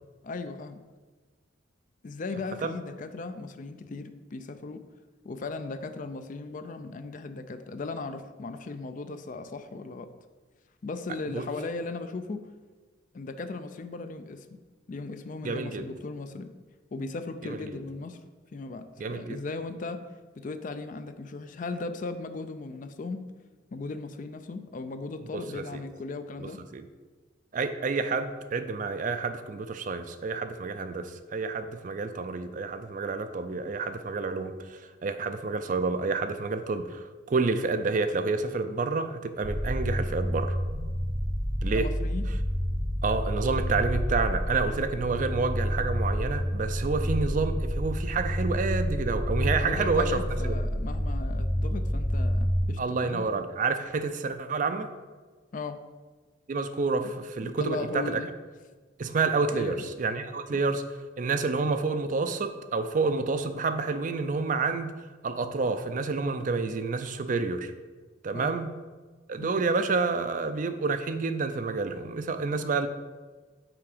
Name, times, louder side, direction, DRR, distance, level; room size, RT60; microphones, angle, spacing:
voice 1, 0.2-0.8 2.0-4.8 5.2-10.1 10.8-12.5 13.1-14.5 14.9-16.5 16.9-18.2 18.5-20.1 20.4-23.3 23.7-26.6 41.7-42.2 49.7-53.2 55.5-55.8 57.4-58.3 59.5-59.8 68.3-68.6 69.4-69.6, left 3 dB, 40° left, 9 dB, 0.4 m, -37 dB
voice 2, 15.4-15.9 17.4-17.6 19.0-19.4 25.3-25.8 26.4-26.5 26.7-26.8 27.5-40.6 41.6-41.9 43.0-50.5 52.8-54.9 56.5-58.2 59.0-60.8 61.2-64.9 65.2-67.7 68.2-68.7 69.3-72.9, right 4 dB, 40° right, 9 dB, 0.4 m, -29 dB
sound 1, 39.4-52.6, equal, 5° left, 0.8 m, -29 dB
5.9 x 4.6 x 4.9 m, 1.4 s
head